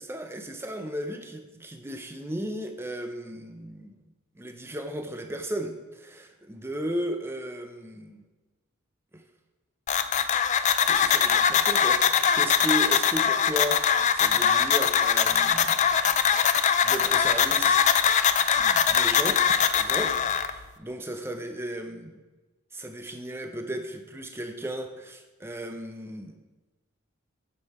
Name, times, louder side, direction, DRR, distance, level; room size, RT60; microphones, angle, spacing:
voice 1, 0.0-8.3 9.1-9.2 10.9-15.8 16.8-18.2 18.6-22.2 22.7-26.4, right 1 dB, 10° right, 6 dB, 0.6 m, -35 dB
sound 1, 9.9-20.5, left 7 dB, 35° left, 0.3 m, -22 dB
8.4 x 6.5 x 4.3 m, 1.2 s
head